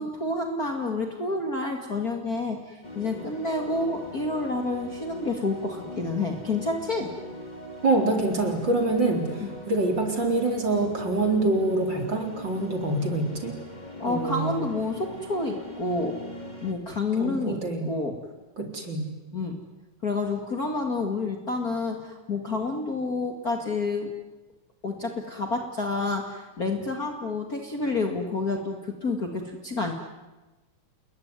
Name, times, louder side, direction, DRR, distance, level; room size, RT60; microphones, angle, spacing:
voice 1, 0.0-7.1 9.4-9.5 14.0-16.2 16.6-18.2 19.3-19.6 20.0-24.1 24.8-29.9, left 3 dB, 35° left, 3 dB, 2.4 m, -29 dB
sound 1, 2.8-16.7, left 1 dB, 15° left, 3.6 m, -41 dB
voice 2, 7.8-13.5 14.1-14.6 17.2-17.9 18.6-19.1, right 2 dB, 35° right, 3 dB, 4.5 m, -25 dB
29.0 x 21.5 x 9.7 m, 1.1 s
omnidirectional pair, 3.3 m